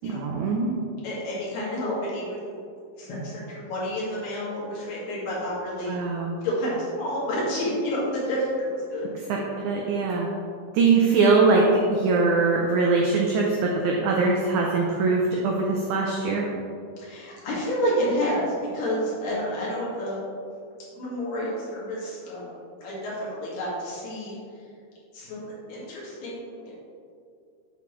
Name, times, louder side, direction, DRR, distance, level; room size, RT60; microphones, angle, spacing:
voice 1, 0.0-0.7 5.9-6.4 9.3-10.3 10.7-16.5, right 3 dB, 85° right, -1 dB, 1.7 m, -22 dB
voice 2, 1.0-2.6 3.0-6.0 6.4-9.1 17.0-20.2 20.9-22.5 22.8-24.7 25.1-26.7, equal, 65° left, -7 dB, 3.4 m, -29 dB
7.9 x 7.0 x 3.1 m, 2.4 s
omnidirectional pair, 4.4 m